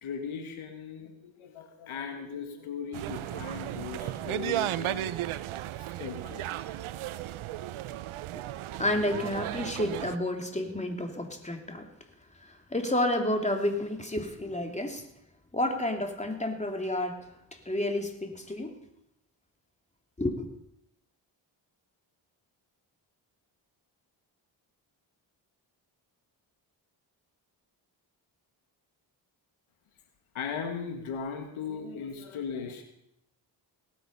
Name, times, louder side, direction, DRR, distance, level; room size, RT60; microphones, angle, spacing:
voice 1, 0.0-5.5 6.0-6.6 30.3-32.8, left 6 dB, 80° left, 5 dB, 1.8 m, -38 dB
sound 1, 2.9-10.2, right 14 dB, 80° right, 0.7 m, -35 dB
voice 2, 8.8-11.8 12.4-15.0 15.5-17.2 17.7-18.8 20.2-20.5, left 1 dB, 15° left, 3 dB, 2.9 m, -30 dB
18.0 x 8.4 x 5.5 m, 0.78 s
supercardioid pair, 50°, 48 cm